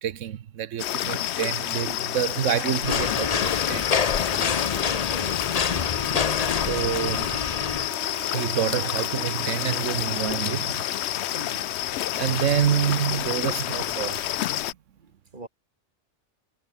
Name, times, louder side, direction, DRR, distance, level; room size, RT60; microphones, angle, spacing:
voice 1, 0.0-3.9 4.4-4.7 6.7-7.4 8.3-10.9 12.1-14.3, right 10 dB, 85° right, 1.2 m, -28 dB
sound 1, 0.8-14.7, left 12 dB, 70° left, 0.8 m, -29 dB
sound 2, 2.8-7.9, left 6 dB, 35° left, 0.8 m, -27 dB
voice 2, 4.6-5.5 5.9-6.1 11.3-11.8 15.0-15.5, right 2 dB, 40° right, 3.0 m, -43 dB
sound 3, 5.8-10.0, left 2 dB, 15° left, 1.2 m, -41 dB
omnidirectional pair, 1.3 m